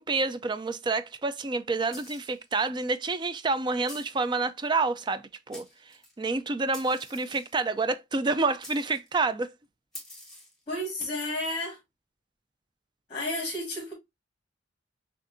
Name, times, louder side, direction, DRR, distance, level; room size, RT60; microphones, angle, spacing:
voice 1, 0.0-5.6 6.2-9.5, right 3 dB, 25° right, 0.4 m, -28 dB
sound 1, 1.9-2.4 3.9-4.3 5.1-5.2 5.5-6.1 6.7-7.6 8.6-9.1 9.9-10.6, left 1 dB, 5° left, 1.5 m, -47 dB
voice 2, 10.7-11.8 13.1-13.9, left 1 dB, 30° left, 1.6 m, -32 dB
6.2 x 2.5 x 2.6 m
head